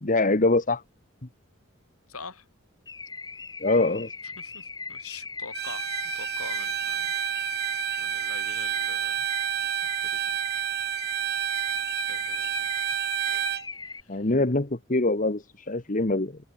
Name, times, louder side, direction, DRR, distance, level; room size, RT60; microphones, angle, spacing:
voice 1, 0.0-0.8 3.6-4.1 14.1-16.4, left 2 dB, 35° left, 1.2 m, -24 dB
voice 2, 2.1-2.5 4.2-5.9 6.1-7.7 8.0-9.3 9.8-10.4 12.1-12.8 13.8-14.3, left 5 dB, 80° left, 6.8 m, -45 dB
Car / Alarm, 2.9-14.0, left 4 dB, 20° left, 2.0 m, -39 dB
Bowed string instrument, 5.5-13.7, right 11 dB, 45° right, 0.6 m, -29 dB
head